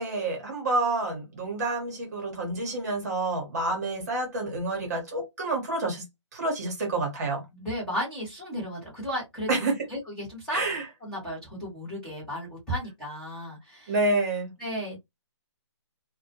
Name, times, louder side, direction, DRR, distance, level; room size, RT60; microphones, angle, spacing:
voice 1, 0.0-6.1 6.3-7.4 9.5-9.9 10.5-10.9 13.9-14.5, right 2 dB, 35° right, 0.9 m, -28 dB
voice 2, 7.5-9.5 9.9-10.6 11.0-13.9 14.6-15.0, equal, 5° left, 1.0 m, -34 dB
2.1 x 2.1 x 2.8 m
hypercardioid pair, 160°, 16 cm